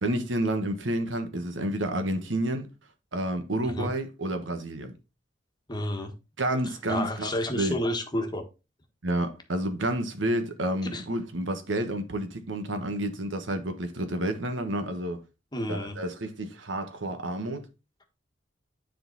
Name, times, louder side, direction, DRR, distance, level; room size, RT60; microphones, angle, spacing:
voice 1, 0.0-2.7 3.1-4.9 6.4-7.8 9.0-15.2 15.7-17.7, right 1 dB, 85° right, 1.3 m, -30 dB
voice 2, 5.7-6.1 6.9-8.4 10.9-11.0 15.5-16.0, left 1 dB, 25° left, 1.3 m, -30 dB
10.0 x 3.9 x 4.0 m
head